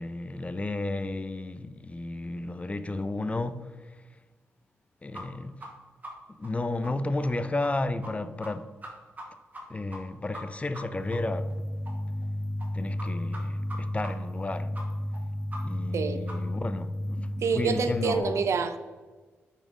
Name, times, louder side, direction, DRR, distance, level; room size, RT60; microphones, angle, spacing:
voice 1, 0.0-4.0 5.0-5.6 6.4-8.7 9.7-11.6 12.7-14.7 15.6-18.5, left 2 dB, 25° left, 0.4 m, -33 dB
sound 1, 5.1-5.2 5.6-5.7 6.0-6.1 6.4-6.5 6.8-6.9 7.2-7.3 7.6-7.7 8.0-8.1 8.4-8.5 8.8-9.3 9.5-9.6 9.9-10.0 10.3-10.4 10.7-10.8 11.1-11.2 11.5-11.6 11.8-11.9 12.2-12.3 12.6-12.7 13.0-13.1 13.3-13.4 13.7-13.8 14.0-14.1 14.4-14.5 14.7-14.8 15.1-15.2 15.5-15.6 15.9-16.0 16.3-16.4 16.7-16.8, equal, 30° right, 1.7 m, -41 dB
sound 2, 10.9-18.2, left 1 dB, 65° left, 1.8 m, -33 dB
voice 2, 17.4-18.8, right 5 dB, 65° right, 0.5 m, -27 dB
5.2 x 5.0 x 3.7 m
supercardioid pair, 55°, 5 cm